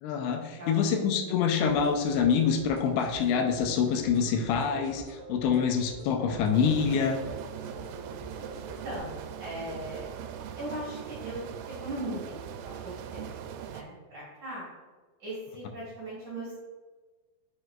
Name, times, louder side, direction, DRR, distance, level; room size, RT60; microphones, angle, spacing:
voice 1, 0.0-7.2, left 6 dB, 85° left, 4 dB, 2.9 m, -26 dB
voice 2, 0.6-1.3 8.6-10.1 10.6-12.3 12.6-14.7 15.2-16.5, right 1 dB, 45° right, -9 dB, 2.4 m, -39 dB
sound 1, 1.6-9.0, right 2 dB, 65° right, 1.7 m, -46 dB
sound 2, 6.5-13.8, right 8 dB, 85° right, 2.7 m, -40 dB
6.6 x 6.2 x 2.4 m, 1.3 s
omnidirectional pair, 5.2 m